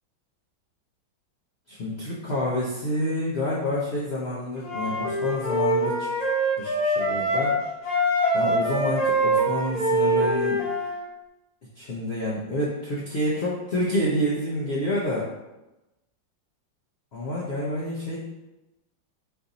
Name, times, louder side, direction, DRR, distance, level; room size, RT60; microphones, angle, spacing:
voice 1, 1.7-6.1 6.6-7.5 8.3-10.6 11.8-15.3 17.1-18.2, left 1 dB, 65° left, -7 dB, 0.6 m, -28 dB
Wind instrument woodwind instrument, 4.6-7.6 7.8-11.0, right 1 dB, 30° left, 0.8 m, -24 dB
4.4 x 2.6 x 3.9 m, 1.0 s
omnidirectional pair, 2.1 m